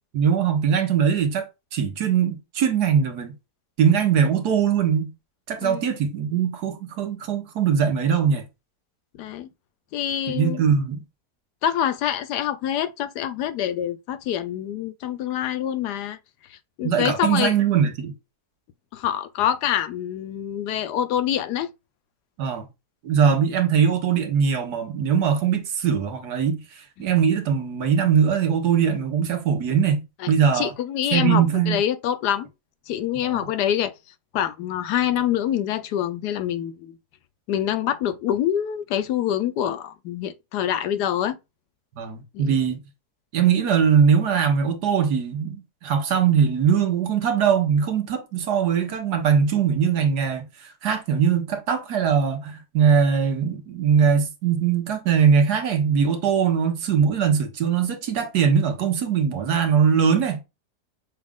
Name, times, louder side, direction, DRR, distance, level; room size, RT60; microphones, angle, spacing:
voice 1, 0.1-3.3 3.8-5.1 5.5-8.4 10.3-11.0 16.8-18.1 22.4-22.7 23.0-30.7 31.1-31.8 33.2-33.5 42.0-42.8 43.3-60.4, right 7 dB, 75° right, 1.5 m, -21 dB
voice 2, 9.2-9.5 9.9-10.6 11.6-16.2 16.5-17.5 18.9-21.7 30.2-32.5 32.9-33.9 34.3-37.0 37.5-41.4 42.3-42.6, left 10 dB, 80° left, 1.2 m, -26 dB
6.2 x 2.4 x 3.5 m
omnidirectional pair, 1.7 m